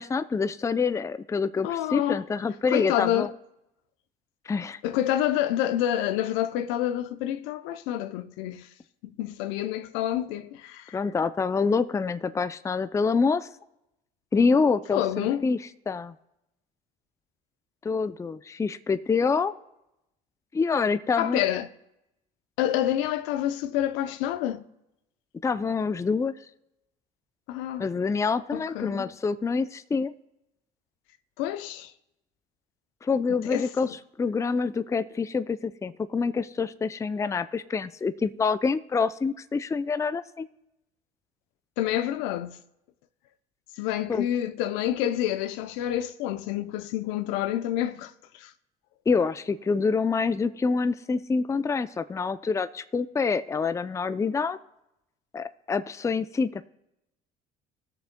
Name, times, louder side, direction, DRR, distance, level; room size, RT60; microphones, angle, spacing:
voice 1, 0.0-3.3 4.5-4.8 10.9-13.5 14.3-15.6 15.9-16.1 17.8-19.5 20.5-21.4 25.4-26.4 27.8-30.1 33.0-40.5 44.1-44.3 49.1-54.6 55.3-56.6, left 5 dB, 15° left, 0.4 m, -26 dB
voice 2, 1.6-2.2 2.7-3.3 4.8-8.7 9.2-11.0 14.9-15.5 21.2-21.7 22.6-24.6 27.5-27.9 28.5-29.1 31.4-31.9 33.4-33.7 41.8-42.6 43.8-48.5, left 12 dB, 80° left, 0.6 m, -28 dB
19.5 x 6.8 x 2.2 m
supercardioid pair, 80°, 20 cm